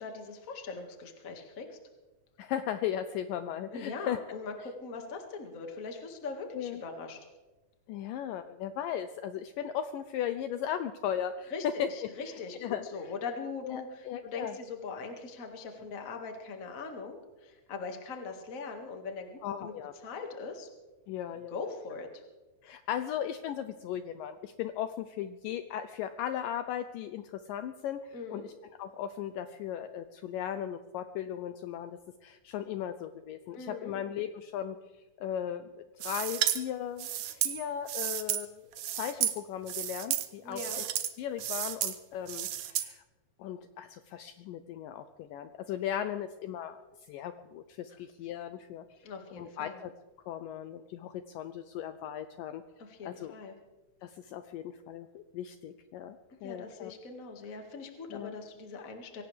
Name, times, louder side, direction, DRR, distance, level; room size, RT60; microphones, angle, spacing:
voice 1, 0.0-1.8 3.7-7.2 11.5-12.6 12.9-19.7 20.0-20.7 21.5-22.2 28.1-28.4 33.5-34.0 40.4-40.8 49.0-49.8 52.8-53.5 56.3-59.2, left 4 dB, 35° left, 3 dB, 1.4 m, -41 dB
voice 2, 2.4-4.4 6.5-6.8 7.9-12.3 12.6-12.9 13.6-14.6 19.4-19.9 21.1-21.6 22.6-28.5 28.8-34.8 35.2-38.7 38.9-40.8 41.2-43.0 43.4-48.8 49.3-49.9 50.3-52.6 53.0-53.4 54.0-56.2 56.4-56.9 58.1-58.3, left 10 dB, 80° left, 10 dB, 2.0 m, -37 dB
sound 1, 36.0-36.6 37.0-38.4 38.7-39.4 39.7-40.3 40.5-41.1 41.4-42.0 42.3-42.9, right 12 dB, 80° right, 1.5 m, -32 dB
23.5 x 17.5 x 3.4 m, 1.1 s
omnidirectional pair, 4.4 m